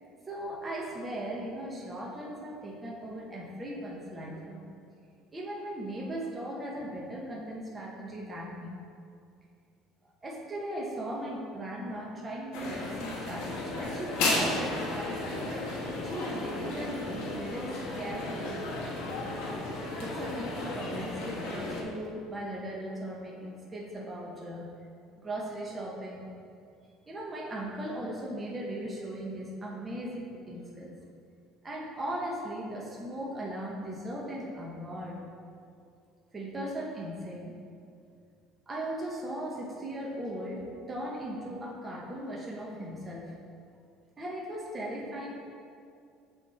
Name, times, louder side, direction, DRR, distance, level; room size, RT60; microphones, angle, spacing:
voice 1, 0.3-4.6 5.3-8.8 10.2-15.6 16.0-17.7 18.0-18.6 20.0-24.7 25.2-26.3 27.1-30.9 31.6-35.2 36.3-37.6 38.7-43.3 44.2-45.3, right 1 dB, 20° right, -4 dB, 0.8 m, -38 dB
sound 1, 12.5-21.8, left 2 dB, 80° left, 1.1 m, -34 dB
7.7 x 3.1 x 4.2 m, 2.4 s
cardioid pair, 135°, 0 cm